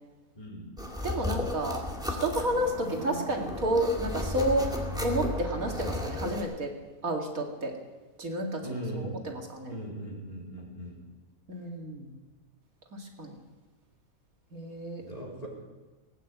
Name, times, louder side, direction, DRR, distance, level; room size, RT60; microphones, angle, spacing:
voice 1, 0.3-0.8 8.6-9.2 9.7-11.0 15.0-15.5, right 1 dB, 25° left, -3 dB, 4.1 m, -39 dB
sound 1, 0.8-6.4, left 1 dB, 5° right, 2.2 m, -34 dB
voice 2, 1.0-1.8 2.2-4.7 5.0-6.7 7.0-7.7 8.2-9.7 11.5-12.1 12.9-13.4 14.5-15.0, right 1 dB, 80° right, 1 dB, 2.7 m, -30 dB
19.0 x 9.5 x 8.0 m, 1.2 s
omnidirectional pair, 1.5 m